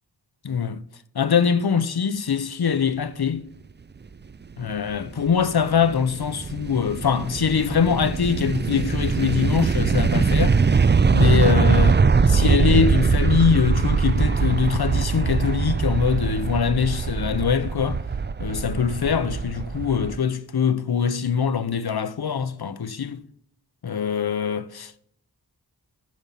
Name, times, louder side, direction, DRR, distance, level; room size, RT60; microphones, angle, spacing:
voice 1, 0.4-0.8 1.1-3.5 4.6-10.6 11.1-12.0 12.3-18.0 18.4-23.2 23.8-25.0, left 7 dB, 65° left, 0.8 m, -23 dB
sound 1, 4.7-20.2, right 5 dB, 25° right, 0.4 m, -22 dB
14.0 x 5.3 x 5.7 m
wide cardioid pair, 55°, 40 cm